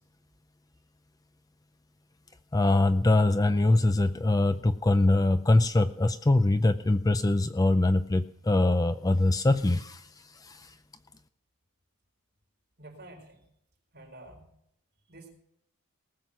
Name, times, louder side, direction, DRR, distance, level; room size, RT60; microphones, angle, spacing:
voice 1, 2.5-10.0 10.4-10.6, left 2 dB, 15° left, 10 dB, 0.4 m, -23 dB
voice 2, 12.8-13.5 13.9-14.5 15.1-15.4, right 2 dB, 45° right, 1 dB, 4.4 m, -49 dB
19.0 x 7.8 x 5.9 m, 0.74 s
head